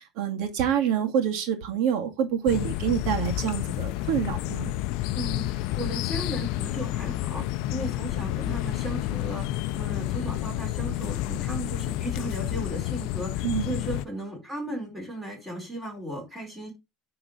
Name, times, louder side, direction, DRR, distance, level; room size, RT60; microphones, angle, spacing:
voice 1, 0.0-4.7 13.4-13.7, right 9 dB, 60° right, 2.1 m, -27 dB
sound 1, 2.5-14.0, left 15 dB, 60° left, 0.6 m, -30 dB
voice 2, 5.1-9.5 9.7-16.7, right 1 dB, 10° right, 4.7 m, -36 dB
9.9 x 3.9 x 5.1 m
cardioid pair, 165°, 0 cm